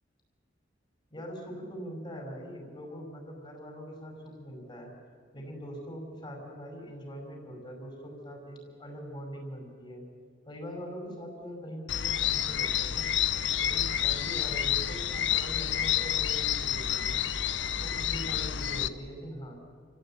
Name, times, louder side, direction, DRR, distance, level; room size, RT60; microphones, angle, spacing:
voice 1, 1.1-4.9 5.3-10.0 10.5-13.1 13.6-17.2 17.8-19.6, equal, 25° left, 1 dB, 5.3 m, -42 dB
sound 1, 11.9-18.9, left 10 dB, 70° left, 0.8 m, -29 dB
28.5 x 16.0 x 9.0 m, 2.1 s
head